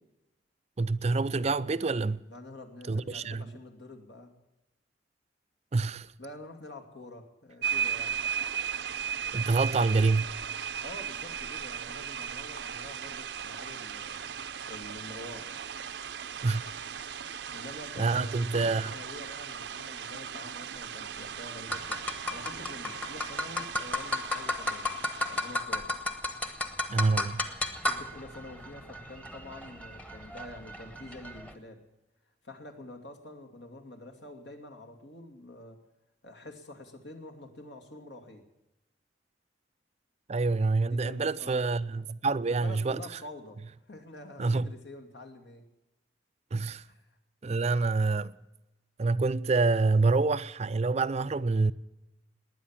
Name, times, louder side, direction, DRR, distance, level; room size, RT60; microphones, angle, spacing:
voice 1, 0.8-2.2 2.9-3.4 5.7-6.1 9.3-10.3 16.4-16.6 18.0-18.9 26.9-27.4 40.3-43.0 44.4-44.7 46.5-46.8 47.4-48.3 49.0-51.7, right 3 dB, 35° right, 0.5 m, -27 dB
voice 2, 2.3-4.3 6.2-8.2 10.8-15.5 17.5-25.0 25.3-26.0 27.7-31.8 32.4-35.8 36.2-38.4 40.9-41.6 42.5-43.6 43.9-45.6 46.9-47.2, left 1 dB, 70° left, 2.6 m, -47 dB
sound 1, 7.6-25.6, right 8 dB, 65° right, 0.7 m, -37 dB
sound 2, 21.7-31.5, left 2 dB, 5° left, 1.1 m, -35 dB
20.0 x 9.8 x 7.4 m
head